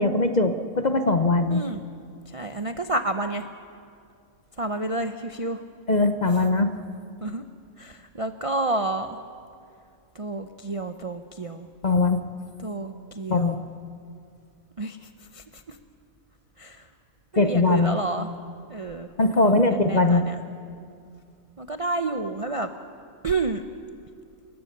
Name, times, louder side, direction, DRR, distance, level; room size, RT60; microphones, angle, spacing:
voice 1, 0.0-1.6 5.9-6.7 11.8-12.2 13.3-13.6 17.4-18.0 19.2-20.2, left 2 dB, 35° left, 8 dB, 0.8 m, -21 dB
voice 2, 1.5-1.8 2.3-3.5 4.6-5.6 7.2-7.4 7.8-9.2 10.1-11.7 12.6-13.7 14.8-15.8 16.6-16.9 17.3-18.3 18.7-20.4 21.6-22.7 23.2-23.6, right 2 dB, 35° right, 6 dB, 0.5 m, -30 dB
28.5 x 15.0 x 6.7 m, 2.3 s
omnidirectional pair, 1.5 m